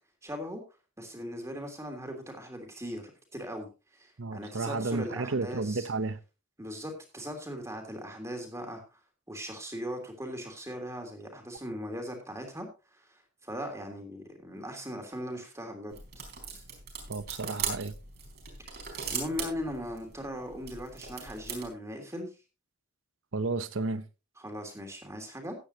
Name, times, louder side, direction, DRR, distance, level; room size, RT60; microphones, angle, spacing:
voice 1, 0.2-0.6 1.0-3.7 3.9-5.9 6.6-9.0 9.3-12.7 12.9-16.0 19.1-22.3 24.4-25.5, equal, 15° right, 3.1 m, -39 dB
voice 2, 4.2-6.2 17.1-17.9 23.3-24.0, right 3 dB, 80° right, 0.9 m, -32 dB
sound 1, 15.9-21.7, right 6 dB, 55° right, 4.3 m, -39 dB
15.0 x 10.0 x 2.9 m
head